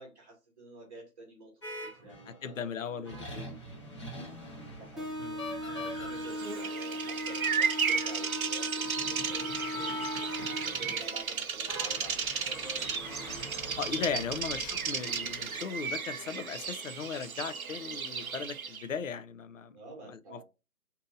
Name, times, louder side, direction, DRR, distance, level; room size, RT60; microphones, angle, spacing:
voice 1, 0.0-3.1 4.7-10.2 10.4-14.5 19.7-20.4, right 2 dB, 25° right, 0.9 m, -49 dB
sound 1, 1.6-2.4 3.0-15.6, left 1 dB, 20° left, 0.7 m, -44 dB
voice 2, 2.4-3.5 5.2-5.4 13.8-19.8 20.1-20.4, left 6 dB, 60° left, 0.5 m, -37 dB
sound 2, 5.0-11.0, equal, ahead, 0.3 m, -38 dB
Bird vocalization bird call bird song, 6.2-18.9, right 6 dB, 70° right, 0.7 m, -34 dB
2.8 x 2.6 x 3.7 m
figure-of-eight pair, 155°, 44 cm